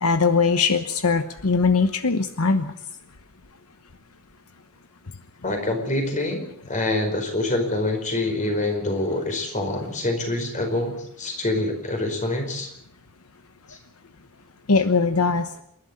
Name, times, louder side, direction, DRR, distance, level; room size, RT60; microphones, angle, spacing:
voice 1, 0.0-2.7 14.7-15.5, left 4 dB, 80° left, 10 dB, 1.1 m, -20 dB
voice 2, 5.4-12.7, left 2 dB, 35° left, 4 dB, 4.9 m, -26 dB
28.0 x 11.5 x 8.7 m, 0.71 s
head